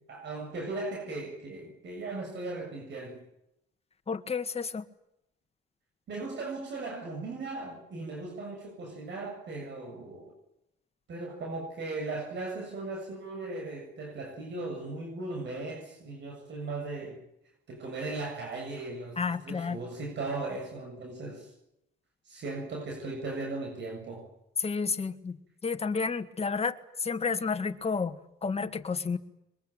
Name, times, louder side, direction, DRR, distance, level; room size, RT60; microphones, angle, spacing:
voice 1, 0.1-3.2 6.1-10.3 11.1-17.2 17.7-21.5 22.3-24.3, right 3 dB, 65° right, 1 dB, 7.5 m, -37 dB
voice 2, 4.1-4.8 19.2-19.8 24.6-25.4 25.6-26.7 27.0-29.2, left 5 dB, 30° left, 8 dB, 2.0 m, -31 dB
23.0 x 22.0 x 9.1 m, 0.81 s
cardioid pair, 90°, 20 cm